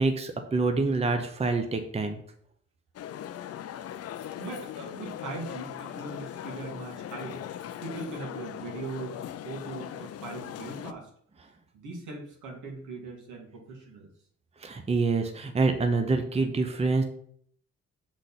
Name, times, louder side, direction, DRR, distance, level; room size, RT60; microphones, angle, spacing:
voice 1, 0.0-2.2 14.6-17.0, right 3 dB, 20° right, 6 dB, 0.7 m, -26 dB
sound 1, 3.0-10.9, left 10 dB, 55° left, 0.5 m, -39 dB
voice 2, 4.4-7.4 7.8-11.1 11.7-14.1, right 3 dB, 80° right, -1 dB, 2.1 m, -40 dB
6.5 x 4.1 x 4.1 m, 0.64 s
cardioid pair, 90°, 30 cm